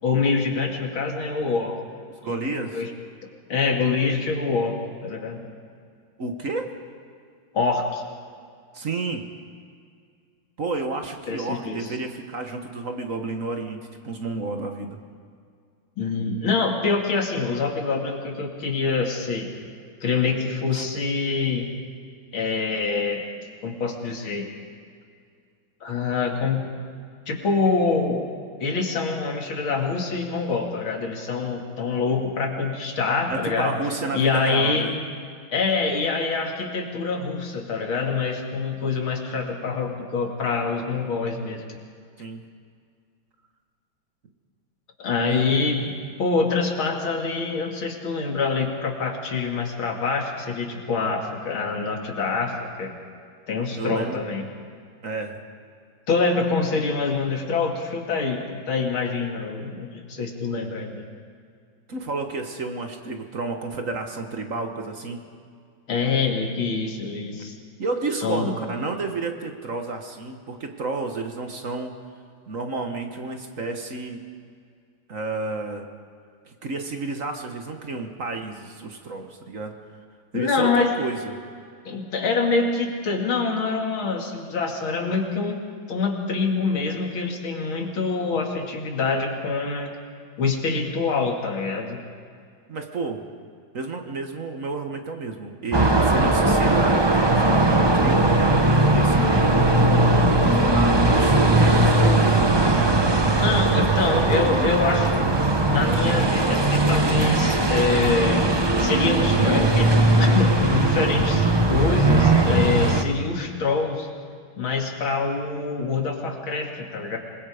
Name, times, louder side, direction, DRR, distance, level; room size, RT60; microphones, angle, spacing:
voice 1, 0.0-1.8 2.2-2.9 3.5-5.4 7.5-8.0 11.3-11.9 16.0-19.5 20.0-21.7 22.3-23.3 23.6-24.5 25.8-26.6 27.3-28.2 28.6-33.8 34.1-34.9 35.5-41.6 45.0-45.8 46.2-53.0 53.5-54.5 56.1-61.0 65.9-67.5 68.2-68.5 80.3-80.9 81.8-89.9 90.4-92.0 103.3-105.1 105.7-108.4 108.8-114.1 114.6-117.2, left 4 dB, 90° left, 1 dB, 3.0 m, -25 dB
voice 2, 2.2-2.8 6.2-6.7 8.7-9.2 10.6-13.8 14.0-15.0 20.7-20.9 33.3-34.9 42.2-42.4 45.2-45.5 45.8-46.0 53.8-54.2 55.0-55.4 61.9-65.2 67.8-71.9 72.5-74.2 75.1-75.9 76.4-79.8 80.3-81.3 92.7-93.2 93.7-98.4 98.8-102.4 102.8-102.9 103.7-105.0, right 3 dB, 45° right, 5 dB, 1.6 m, -31 dB
sound 1, 95.7-113.0, right 2 dB, 20° right, 0.7 m, -19 dB
26.5 x 21.0 x 5.1 m, 2.2 s
omnidirectional pair, 2.2 m